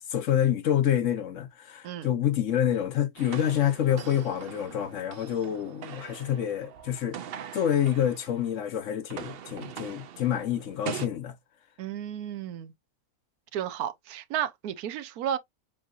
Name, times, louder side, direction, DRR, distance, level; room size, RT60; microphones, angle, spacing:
voice 1, 0.0-7.2 7.5-11.3, left 10 dB, 60° left, 1.0 m, -27 dB
sound 1, 3.2-8.6 8.9-11.1, right 8 dB, 60° right, 0.6 m, -42 dB
voice 2, 11.8-12.7 13.5-15.4, right 10 dB, 90° right, 1.2 m, -33 dB
7.3 x 2.8 x 2.5 m
omnidirectional pair, 1.6 m